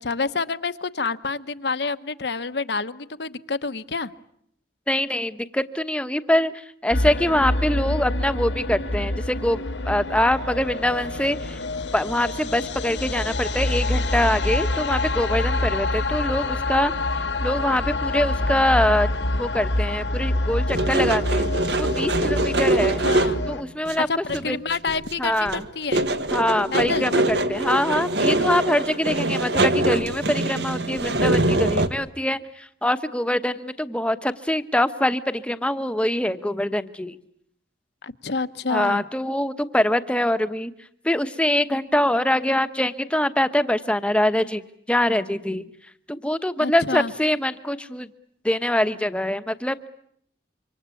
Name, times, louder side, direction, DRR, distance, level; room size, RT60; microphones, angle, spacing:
voice 1, 0.0-4.1 22.8-23.4 24.0-26.1 26.7-27.1 38.0-39.0 46.6-47.1, left 4 dB, 65° left, 12 dB, 1.0 m, -28 dB
voice 2, 4.9-6.5 6.8-11.6 11.9-16.9 17.4-19.1 19.4-21.5 21.8-23.0 23.5-24.1 24.5-24.6 25.2-25.6 26.3-37.2 38.7-40.7 41.0-44.6 44.9-45.6 46.1-48.1 48.4-49.9, left 1 dB, 5° left, 10 dB, 1.0 m, -24 dB
sound 1, 6.9-23.6, left 2 dB, 80° left, 1.8 m, -26 dB
sound 2, 20.7-23.5 23.8-24.0 24.3-25.1 25.4-31.9, right 1 dB, 65° right, 1.7 m, -23 dB
27.0 x 25.0 x 8.4 m, 0.69 s
head